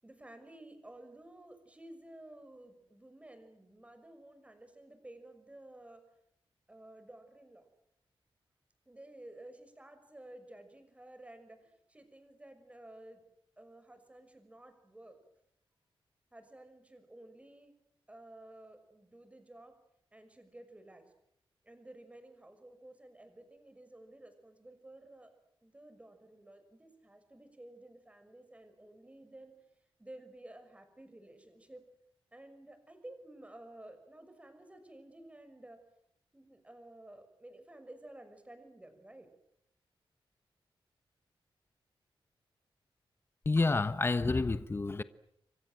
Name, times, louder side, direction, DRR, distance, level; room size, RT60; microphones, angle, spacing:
voice 1, 0.0-6.0 6.7-7.7 8.9-13.2 13.6-15.2 16.3-17.7 18.1-19.8 20.1-21.1 21.6-25.3 25.6-29.5 30.0-31.9 32.3-35.8 36.3-39.3, right 1 dB, 15° right, 6.2 m, -53 dB
voice 2, 43.4-45.0, left 3 dB, 25° left, 1.2 m, -29 dB
29.5 x 25.0 x 7.7 m
wide cardioid pair, 130°, 9 cm